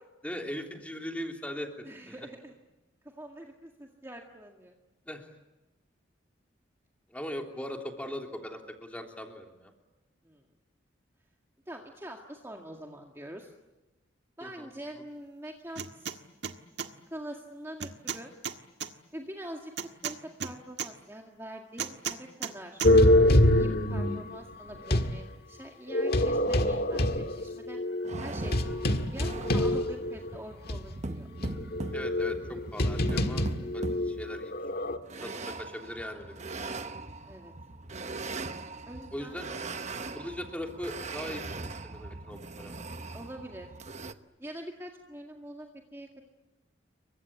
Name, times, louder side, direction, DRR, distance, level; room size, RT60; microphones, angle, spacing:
voice 1, 0.2-2.2 5.1-5.3 7.1-9.7 14.4-14.7 31.9-33.5 33.7-34.5 35.2-36.7 39.1-39.5 40.1-42.7, equal, 5° left, 2 dB, 3.2 m, -39 dB
voice 2, 1.8-2.5 3.0-4.7 10.2-10.4 11.7-13.5 14.4-16.2 17.1-18.3 19.1-19.7 20.0-22.8 23.5-27.8 28.2-28.5 28.8-31.3 37.2-37.5 38.9-39.4 43.1-43.7 44.4-46.2, right 1 dB, 15° right, 1 dB, 2.0 m, -44 dB
sound 1, 15.7-16.2 16.4-16.9 17.8-18.9 19.8-20.9 21.8-22.5 22.8-22.9, right 7 dB, 60° right, 1.6 m, -34 dB
sound 2, 22.8-25.1 25.9-30.3 30.7-30.8 31.4-35.0, left 1 dB, 55° left, 1.7 m, -25 dB
sound 3, 28.0-44.1, right 2 dB, 35° right, 1.0 m, -40 dB
29.5 x 23.5 x 8.6 m, 1.0 s
head